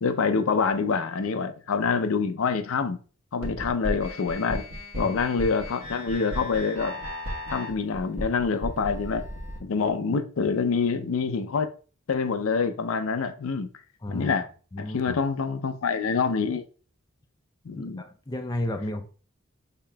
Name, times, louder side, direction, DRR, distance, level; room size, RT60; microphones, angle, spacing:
voice 1, 0.0-3.0 3.3-4.6 4.9-7.0 7.5-9.2 9.6-11.7 12.1-13.7 14.1-14.4 14.8-16.6 17.7-18.0, left 5 dB, 80° left, 0.5 m, -26 dB
sound 1, 3.4-9.6, equal, 85° right, 1.3 m, -35 dB
voice 2, 14.0-14.4 14.7-15.2 17.8-19.1, left 1 dB, 20° left, 0.4 m, -33 dB
5.8 x 3.6 x 2.2 m
head